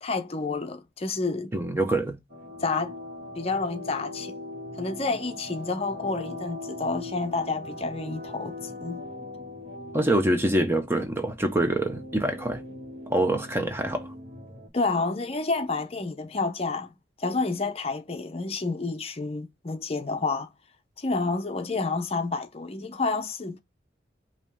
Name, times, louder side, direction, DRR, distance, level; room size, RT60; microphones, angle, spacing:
voice 1, 0.0-1.5 2.6-3.0 3.4-4.3 4.8-9.0 14.7-16.9 17.2-20.5 21.0-23.6, left 3 dB, 35° left, 0.6 m, -29 dB
voice 2, 1.5-2.2 9.9-12.6 13.1-14.1, right 1 dB, 15° right, 0.6 m, -25 dB
sound 1, 2.3-14.7, left 1 dB, 70° right, 1.6 m, -40 dB
5.3 x 2.8 x 3.5 m
head